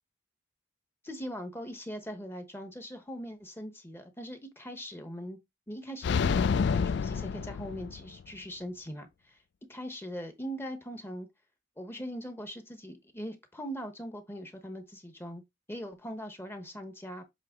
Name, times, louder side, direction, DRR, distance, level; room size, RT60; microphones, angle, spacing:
voice 1, 1.0-5.4 5.7-9.4 9.7-11.3 11.8-15.4 15.7-17.2, equal, 10° left, 1.1 m, -41 dB
sound 1, 6.0-8.2, left 6 dB, 65° left, 0.3 m, -28 dB
7.5 x 3.6 x 3.7 m
head